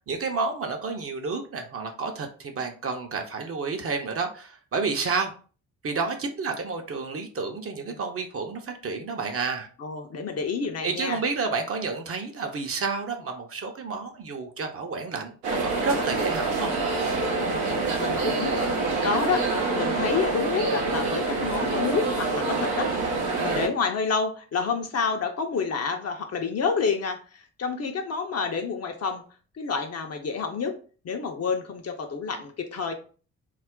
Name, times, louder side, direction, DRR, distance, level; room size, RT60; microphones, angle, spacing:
voice 1, 0.1-5.3 5.8-9.7 10.8-16.7, right 4 dB, 35° right, 4 dB, 0.6 m, -30 dB
voice 2, 9.8-11.2 17.4-17.6 18.0-19.5 19.7-29.2 29.6-30.8 31.0-32.9, left 5 dB, 40° left, 5 dB, 0.6 m, -29 dB
sound 1, 15.4-23.7, right 3 dB, 80° right, 0.7 m, -26 dB
2.4 x 2.0 x 3.6 m, 0.39 s
hypercardioid pair, 40°, 40 cm